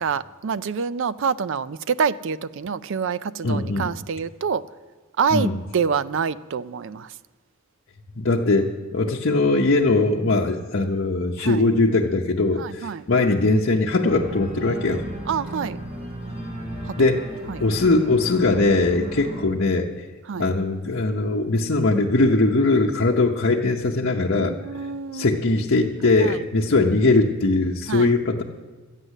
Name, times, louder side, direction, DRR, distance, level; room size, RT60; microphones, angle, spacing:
voice 1, 0.0-4.6 5.2-7.1 11.4-11.6 12.6-13.0 15.3-15.8 16.9-17.1 17.5-17.6 20.3-20.5 24.4-25.3 26.2-26.3 27.9-28.1, right 6 dB, 60° right, 16 dB, 0.4 m, -26 dB
voice 2, 3.4-3.9 5.3-5.6 8.1-15.0 17.0-17.3 17.6-19.9 20.4-24.5 25.1-28.4, left 2 dB, 55° left, -3 dB, 0.8 m, -20 dB
Organ, 14.1-19.5, right 1 dB, 45° right, 3.0 m, -34 dB
13.5 x 9.1 x 8.1 m, 1.3 s
head